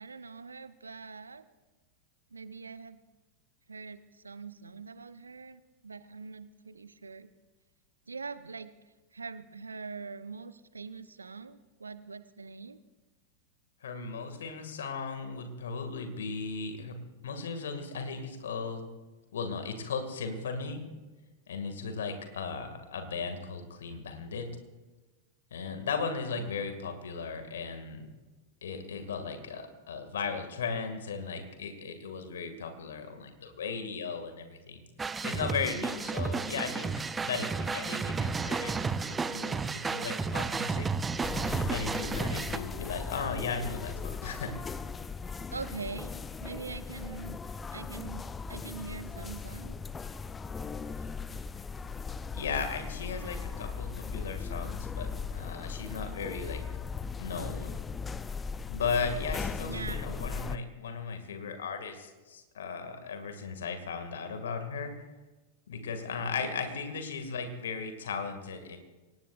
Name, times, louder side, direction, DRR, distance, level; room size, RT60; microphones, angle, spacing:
voice 1, 0.0-1.4 2.3-3.0 3.7-7.3 8.1-8.7 9.1-12.8 26.3-26.7 36.2-36.3 45.5-47.4 47.7-49.7 59.7-60.1 66.4-66.5, right 4 dB, 75° right, 14 dB, 0.8 m, -43 dB
voice 2, 13.8-16.9 17.2-18.8 19.3-20.8 21.5-24.5 25.5-28.1 28.6-34.8 35.2-36.9 37.2-38.7 39.1-40.9 41.5-44.8 51.0-51.1 52.3-56.6 57.2-57.8 58.7-64.9 65.7-68.8, left 5 dB, 65° left, 7 dB, 2.3 m, -36 dB
sound 1, 35.0-42.6, right 4 dB, 15° right, 0.7 m, -32 dB
sound 2, 41.2-60.6, left 5 dB, 15° left, 0.5 m, -38 dB
25.0 x 18.5 x 2.6 m, 1.2 s
figure-of-eight pair, 90°, 0 cm